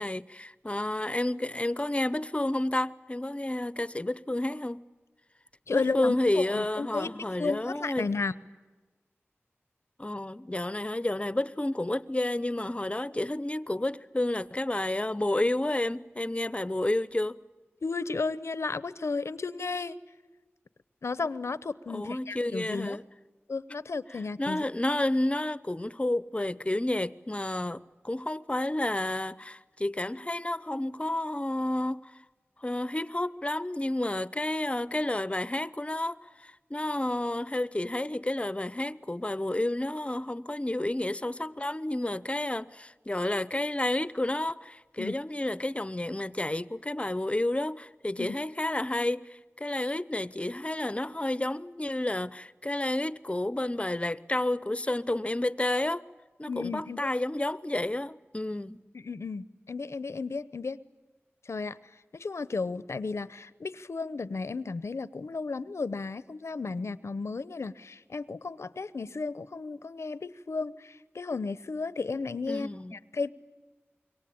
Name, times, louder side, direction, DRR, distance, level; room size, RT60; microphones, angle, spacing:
voice 1, 0.0-4.9 5.7-8.1 10.0-17.4 21.9-23.0 24.1-32.2 32.6-56.0 56.4-58.8 72.5-73.0, left 1 dB, 25° left, 0.8 m, -30 dB
voice 2, 5.7-8.3 17.8-20.0 21.0-23.0 23.5-24.6 45.0-45.1 48.2-48.4 56.5-57.1 59.0-60.8 61.5-61.8 62.1-72.7 73.1-73.3, left 4 dB, 90° left, 0.8 m, -33 dB
26.5 x 23.0 x 8.7 m
wide cardioid pair, 45°, 5 cm